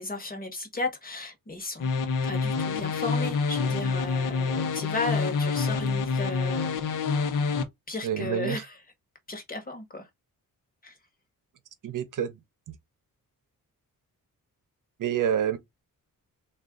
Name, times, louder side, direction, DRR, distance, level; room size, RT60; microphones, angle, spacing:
voice 1, 0.0-1.9 2.2-6.7 7.9-8.8 9.3-10.1 10.8-11.0, left 2 dB, 25° left, 1.1 m, -34 dB
sound 1, 1.8-7.6, left 4 dB, 65° left, 0.8 m, -27 dB
voice 2, 8.0-8.6 11.8-12.3 15.0-15.6, right 9 dB, 65° right, 0.8 m, -27 dB
3.7 x 2.5 x 3.6 m
wide cardioid pair, 170°, 34 cm